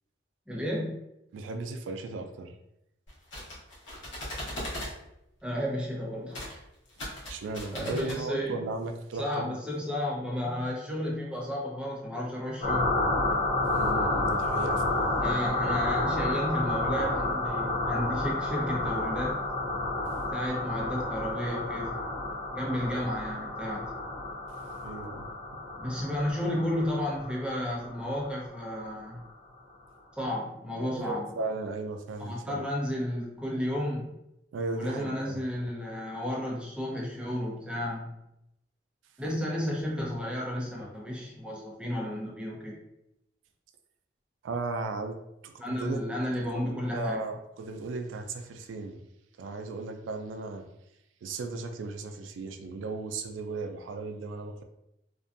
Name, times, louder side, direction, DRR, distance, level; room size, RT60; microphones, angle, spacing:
voice 1, 0.5-0.9 5.4-6.6 7.7-8.6 9.1-13.0 15.1-19.4 20.3-21.9 22.5-23.9 25.8-29.2 30.2-31.3 32.2-34.2 34.7-38.1 39.2-42.8 45.6-47.3, equal, 5° right, -4 dB, 0.5 m, -32 dB
voice 2, 1.3-2.5 7.3-9.5 13.7-15.1 22.8-23.0 24.8-25.3 31.0-32.7 34.5-35.4 44.4-45.2 45.4-49.0 49.4-50.7 51.2-54.6, right 3 dB, 90° right, 6 dB, 0.3 m, -36 dB
sound 1, 3.1-4.9 6.3-6.5 6.9-8.2, left 1 dB, 80° left, 0.9 m, -38 dB
sound 2, 12.6-28.9, left 2 dB, 40° left, 0.5 m, -30 dB
2.5 x 2.2 x 2.4 m, 0.85 s
head